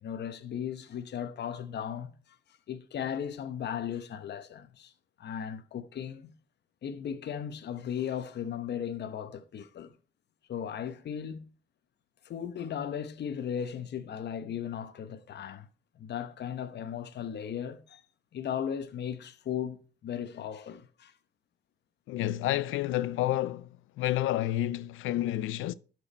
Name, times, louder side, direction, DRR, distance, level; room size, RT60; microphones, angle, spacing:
voice 1, 0.0-2.1 2.7-4.9 5.2-6.3 6.8-9.9 10.5-11.5 12.2-15.7 16.0-18.0 18.3-21.1, left 8 dB, 60° left, 0.9 m, -36 dB
voice 2, 22.1-25.7, left 14 dB, 85° left, 0.5 m, -30 dB
12.0 x 4.8 x 4.3 m
cardioid pair, 90°, 20 cm